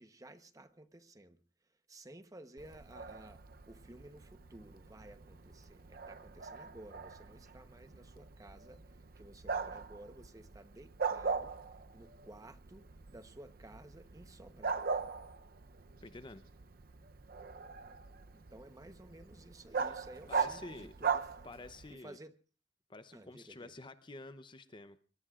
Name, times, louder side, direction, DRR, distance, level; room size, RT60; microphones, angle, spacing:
voice 1, 0.0-14.9 18.3-21.5 21.9-22.3 23.1-23.7, right 1 dB, 20° right, 9 dB, 0.9 m, -55 dB
Bark, 2.6-21.9, right 5 dB, 55° right, 0.7 m, -41 dB
voice 2, 16.0-16.4 19.8-20.0 20.3-20.9 21.4-22.2 22.9-25.0, left 2 dB, 25° left, 12 dB, 0.7 m, -49 dB
23.5 x 21.0 x 2.4 m, 0.37 s
head